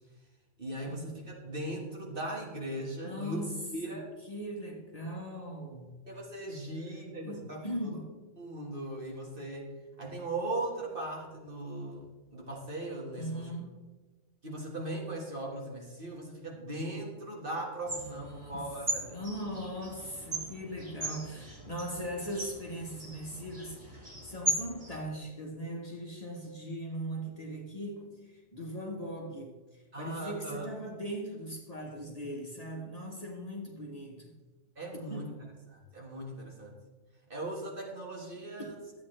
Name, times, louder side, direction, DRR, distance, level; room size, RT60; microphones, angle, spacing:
voice 1, 0.6-3.5 3.7-4.1 6.1-8.0 8.4-9.7 10.0-13.4 14.4-19.2 29.9-30.7 34.7-35.3 35.7-36.8 37.3-38.8, right 1 dB, 45° right, -1 dB, 1.8 m, -38 dB
voice 2, 3.0-4.0 4.2-6.0 7.2-8.1 13.2-13.7 17.8-18.7 19.0-34.3 35.1-35.3 38.6-38.7, equal, 30° left, -1 dB, 1.3 m, -40 dB
sound 1, 17.8-25.0, equal, 30° right, 1.7 m, -38 dB
12.0 x 8.5 x 3.3 m, 1.2 s
omnidirectional pair, 1.3 m